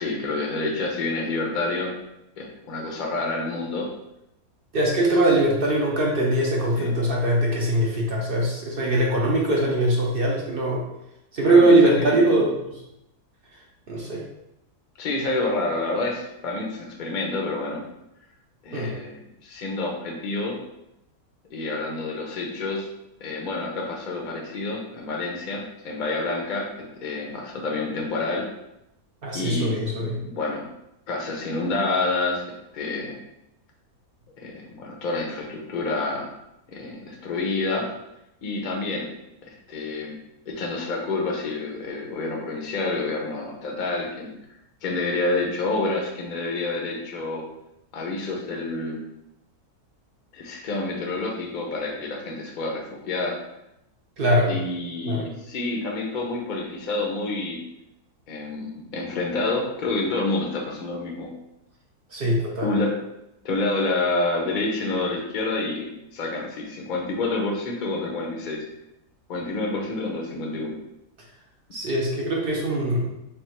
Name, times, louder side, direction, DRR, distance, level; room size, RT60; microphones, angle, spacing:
voice 1, 0.0-1.9 2.4-3.9 6.8-6.9 11.5-12.4 15.0-17.8 18.6-20.6 21.5-22.9 23.2-28.5 29.3-29.9 30.2-30.6 31.1-33.2 34.4-36.3 36.7-37.9 38.4-39.1 39.7-40.2 40.5-44.3 44.8-47.4 47.9-49.0 50.3-53.4 54.5-57.6 58.3-61.3 62.6-62.9 63.4-65.9 66.1-68.6 69.3-70.7, left 2 dB, 45° left, 0 dB, 0.7 m, -28 dB
voice 2, 4.7-10.8 11.3-12.5 13.9-14.2 18.7-18.9 29.2-30.2 54.2-54.5 55.0-55.2 62.1-62.7 71.7-73.0, right 1 dB, 55° right, -3 dB, 0.6 m, -21 dB
3.4 x 2.4 x 4.4 m, 0.85 s
omnidirectional pair, 1.6 m